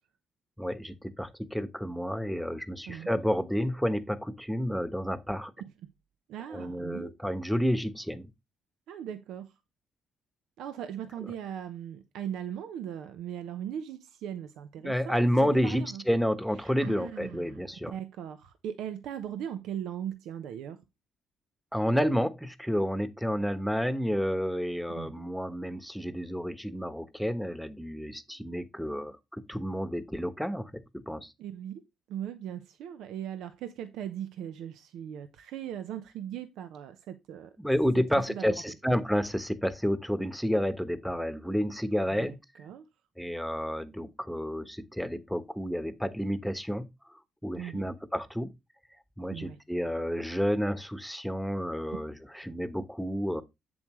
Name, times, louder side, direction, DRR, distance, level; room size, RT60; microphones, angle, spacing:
voice 1, 0.6-5.5 6.5-8.3 14.8-17.9 21.7-31.3 37.6-42.4 43.2-46.9 47.4-48.5 49.2-53.4, equal, ahead, 1.0 m, -30 dB
voice 2, 6.3-7.1 8.9-9.5 10.6-16.0 16.6-20.8 24.9-25.1 31.4-31.8 32.1-37.5 38.3-38.5 42.1-42.9 47.5-47.8 49.3-49.6, right 10 dB, 85° right, 0.8 m, -39 dB
8.0 x 7.2 x 3.1 m
cardioid pair, 90°, 0 cm